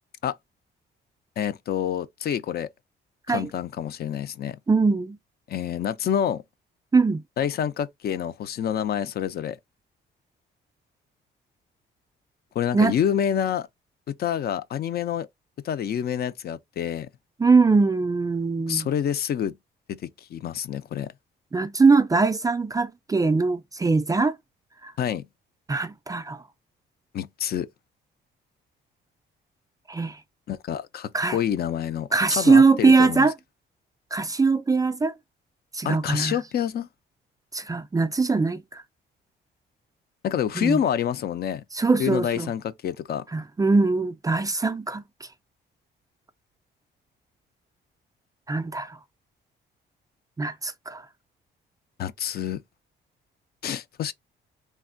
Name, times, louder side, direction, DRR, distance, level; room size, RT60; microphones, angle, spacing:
voice 1, 1.4-2.7 3.3-4.6 5.5-6.4 7.4-9.6 12.6-13.7 14.1-15.3 15.6-17.1 18.7-19.6 19.9-20.0 20.3-21.1 25.0-25.2 27.1-27.7 30.5-33.3 35.8-36.9 40.2-41.6 42.0-43.2 52.0-52.6 53.6-54.1, left 9 dB, 50° left, 0.4 m, -27 dB
voice 2, 4.7-5.2 6.9-7.2 12.7-12.9 17.4-18.9 21.5-24.3 24.8-24.9 25.7-26.4 29.9-30.2 31.1-31.4 32.1-33.3 34.1-35.1 35.7-36.4 37.5-38.8 40.6-40.8 41.7-42.5 43.3-45.0 48.5-49.0 50.4-51.0, right 4 dB, 20° right, 0.3 m, -21 dB
3.3 x 2.1 x 2.4 m
cardioid pair, 90°, 20 cm